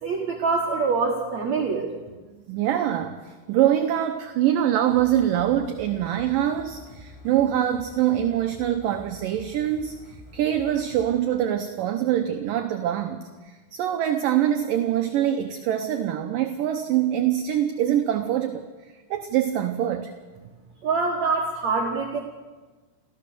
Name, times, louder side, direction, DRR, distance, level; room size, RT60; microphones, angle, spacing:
voice 1, 0.0-1.9 20.8-22.2, right 4 dB, 55° right, 0 dB, 2.3 m, -25 dB
voice 2, 2.5-18.7 19.1-20.1, right 11 dB, 70° right, 7 dB, 2.2 m, -24 dB
sound 1, 4.9-11.2, left 2 dB, 70° left, 9.1 m, -47 dB
27.5 x 15.0 x 6.9 m, 1.3 s
omnidirectional pair, 4.8 m